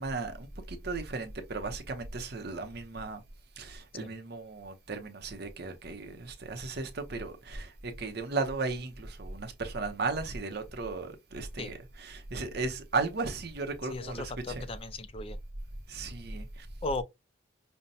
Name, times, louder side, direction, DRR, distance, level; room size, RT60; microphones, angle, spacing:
voice 1, 0.0-3.2 3.6-14.7 15.9-16.7, right 3 dB, 50° right, 0.7 m, -36 dB
voice 2, 13.9-15.4 16.8-17.0, left 2 dB, 30° left, 0.4 m, -36 dB
5.2 x 2.2 x 2.7 m
head